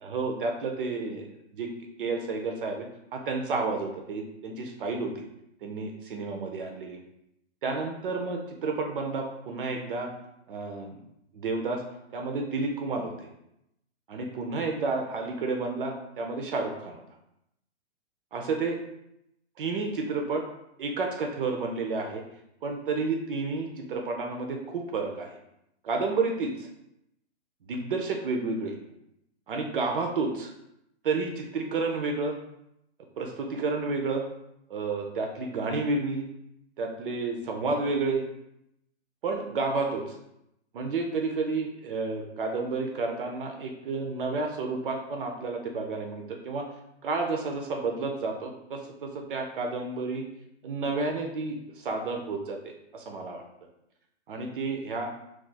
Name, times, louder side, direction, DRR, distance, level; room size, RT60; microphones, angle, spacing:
voice 1, 0.0-1.7 2.0-2.9 3.1-5.2 5.6-7.0 7.6-10.1 10.5-11.0 11.3-11.8 12.1-13.3 14.1-17.0 18.3-18.8 19.6-20.4 20.8-22.2 22.6-25.4 25.8-26.7 27.7-28.7 29.5-30.5 31.0-32.4 33.2-34.2 34.7-36.3 36.8-38.3 39.2-40.2 40.7-46.7 47.0-50.3 50.6-52.6 52.9-53.4 54.3-55.1, right 3 dB, 50° right, 3 dB, 0.4 m, -31 dB
2.4 x 2.3 x 3.9 m, 0.80 s
hypercardioid pair, 160°, 34 cm